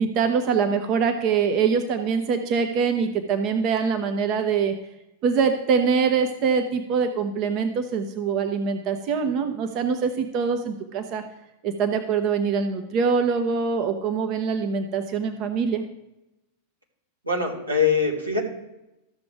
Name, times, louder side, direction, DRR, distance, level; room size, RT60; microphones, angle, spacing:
voice 1, 0.0-4.7 5.2-11.2 11.6-15.8, right 6 dB, 40° right, 5 dB, 0.9 m, -24 dB
voice 2, 17.2-18.4, left 5 dB, 85° right, -3 dB, 2.3 m, -23 dB
13.5 x 6.9 x 3.5 m, 0.94 s
figure-of-eight pair, 90°, 0 cm